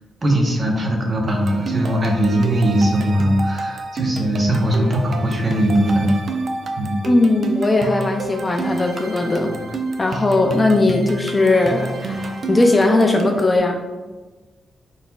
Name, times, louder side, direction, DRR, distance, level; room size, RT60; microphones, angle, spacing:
voice 1, 0.2-6.2 6.8-6.9 9.5-9.6 10.1-10.2, right 1 dB, 30° right, 0 dB, 0.8 m, -19 dB
sound 1, 1.3-13.6, right 3 dB, 50° right, 0.4 m, -29 dB
voice 2, 7.1-9.5 10.0-13.8, left 2 dB, 20° left, 3 dB, 0.3 m, -18 dB
4.0 x 4.0 x 2.3 m, 1.3 s
cardioid pair, 125°, 0 cm